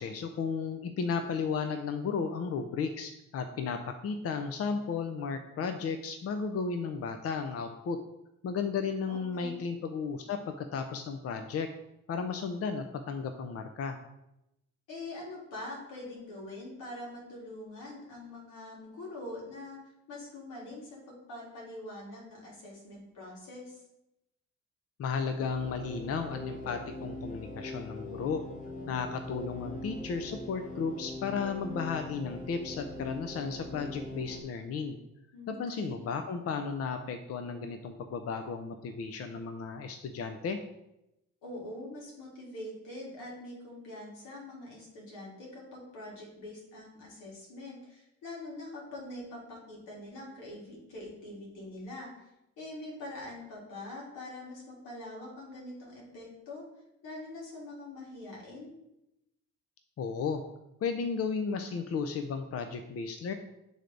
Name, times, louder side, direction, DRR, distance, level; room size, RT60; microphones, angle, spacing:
voice 1, 0.0-8.0 8.4-11.7 12.1-14.0 25.0-28.4 28.9-35.0 35.5-40.6 60.0-60.4 60.8-63.3, left 5 dB, 50° left, 7 dB, 0.6 m, -34 dB
voice 2, 9.0-9.6 14.9-19.8 20.1-23.8 35.3-36.1 41.4-52.3 52.6-56.6 57.0-58.7, left 1 dB, 90° left, -3 dB, 2.3 m, -44 dB
sound 1, 25.4-34.4, left 2 dB, 25° left, 1.0 m, -42 dB
7.9 x 3.4 x 3.9 m, 0.88 s
cardioid pair, 90°, 30 cm